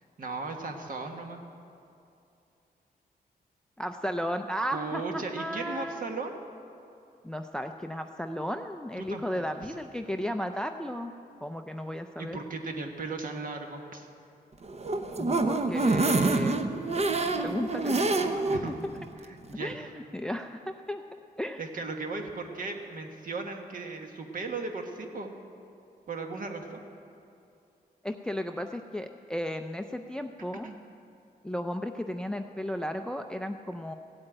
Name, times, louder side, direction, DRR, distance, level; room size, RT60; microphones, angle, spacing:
voice 1, 0.2-1.4 4.7-6.4 9.0-9.2 9.5-9.7 12.2-14.1 18.5-18.7 19.2-19.9 21.6-25.3 26.1-26.8 30.6-30.8, right 3 dB, 55° right, 3 dB, 1.4 m, -37 dB
voice 2, 3.8-6.2 7.2-11.1 11.4-12.4 15.2-16.6 17.0-17.1 17.4-18.1 19.6-19.9 20.1-21.0 21.4-21.6 28.0-30.7 31.4-33.9, equal, 5° left, 6 dB, 0.4 m, -34 dB
sound 1, 14.6-18.6 19.0-19.1 19.4-19.5, right 3 dB, 40° right, 0.8 m, -26 dB
15.5 x 8.7 x 8.8 m, 2.6 s
wide cardioid pair, 150°, 17 cm